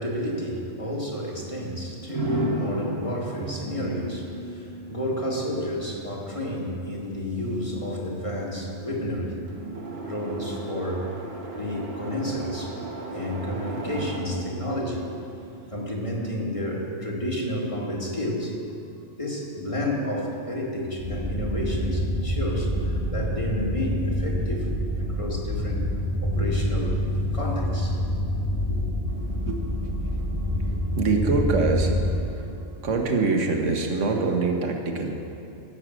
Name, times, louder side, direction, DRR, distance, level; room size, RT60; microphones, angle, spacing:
voice 1, 0.0-9.5 10.1-11.1 11.5-12.7 13.1-15.1 15.7-18.6 19.2-24.7 25.0-25.9 26.2-27.0 27.3-28.0 28.7-28.8, equal, 25° left, -2 dB, 2.0 m, -31 dB
sound 1, 2.1-15.9, right 1 dB, 55° right, 1.6 m, -35 dB
voice 2, 12.8-13.3 14.5-14.6 15.3-15.7 18.8-19.2 26.1-26.5 29.1-35.3, right 3 dB, 70° right, 2 dB, 1.7 m, -27 dB
sound 2, 21.0-32.1, left 1 dB, 75° left, 2.2 m, -27 dB
16.0 x 6.7 x 7.7 m, 2.6 s
omnidirectional pair, 1.3 m